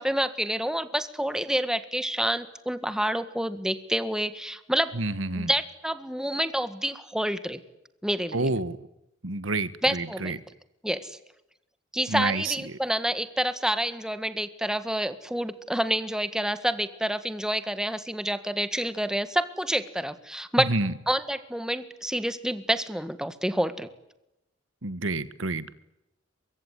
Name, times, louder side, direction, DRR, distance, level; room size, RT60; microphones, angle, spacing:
voice 1, 0.0-4.9 5.4-7.6 8.0-8.5 9.8-10.4 10.8-11.2 11.9-20.7 21.1-23.9, right 1 dB, 5° right, 12 dB, 1.7 m, -28 dB
voice 2, 4.9-5.5 8.3-8.8 9.2-10.4 12.1-12.8 20.6-20.9 24.8-25.7, right 2 dB, 75° right, 15 dB, 1.4 m, -29 dB
24.0 x 23.5 x 9.7 m, 0.87 s
head